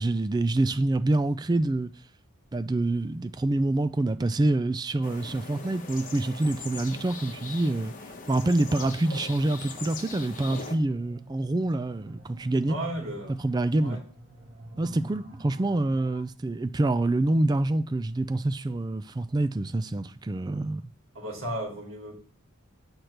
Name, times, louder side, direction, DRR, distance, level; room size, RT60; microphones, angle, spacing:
voice 1, 0.0-1.9 2.5-7.9 8.3-12.8 13.4-14.0 14.8-20.8, right 2 dB, 20° right, 0.3 m, -26 dB
sound 1, 5.0-10.8, left 4 dB, 35° left, 1.1 m, -41 dB
sound 2, 10.9-16.2, right 2 dB, 40° right, 1.8 m, -47 dB
voice 2, 12.6-13.3 13.8-14.0 21.1-22.1, right 1 dB, 65° right, 3.0 m, -34 dB
7.9 x 4.4 x 6.5 m
head